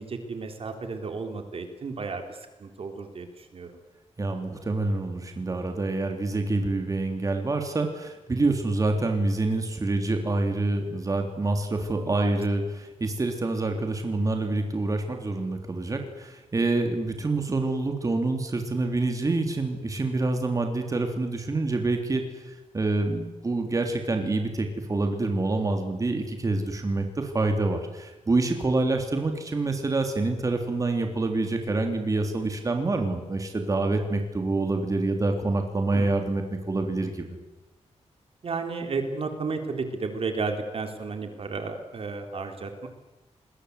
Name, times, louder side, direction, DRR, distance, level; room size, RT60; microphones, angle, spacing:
voice 1, 0.0-3.7 12.0-12.4 35.9-36.2 38.4-42.9, right 4 dB, 55° right, 6 dB, 3.6 m, -33 dB
voice 2, 4.2-37.3, right 2 dB, 30° right, 5 dB, 3.3 m, -27 dB
28.5 x 21.5 x 8.2 m, 1.1 s
wide cardioid pair, 140°, 12 cm